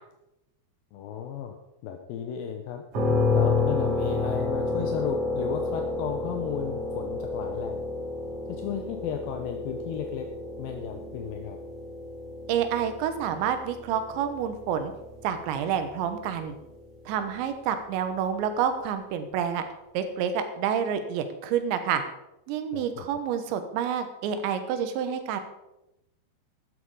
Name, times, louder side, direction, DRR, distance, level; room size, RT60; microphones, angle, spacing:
voice 1, 0.9-1.6 1.8-2.8 3.3-7.9 8.5-10.3 10.6-11.6 22.7-23.1, left 8 dB, 80° left, 4 dB, 2.1 m, -34 dB
sound 1, 2.9-16.7, left 3 dB, 40° right, 3.0 m, -30 dB
voice 2, 12.5-14.9 15.2-16.6 17.1-19.6 20.0-22.0 22.5-25.4, right 8 dB, 85° right, 8 dB, 3.4 m, -28 dB
12.5 x 10.0 x 4.8 m, 0.92 s
omnidirectional pair, 5.1 m